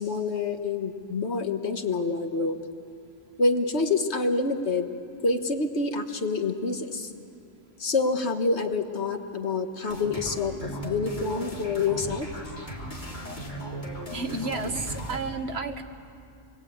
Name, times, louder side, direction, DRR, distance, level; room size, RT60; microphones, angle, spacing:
voice 1, 0.0-2.6 3.4-4.9 5.2-7.1 7.8-12.3, left 3 dB, 65° left, 6 dB, 1.7 m, -27 dB
sound 1, 9.9-15.2, right 1 dB, 40° left, 3.6 m, -36 dB
voice 2, 14.1-15.8, right 3 dB, 60° right, 6 dB, 1.7 m, -31 dB
29.5 x 22.0 x 8.7 m, 2.4 s
omnidirectional pair, 1.2 m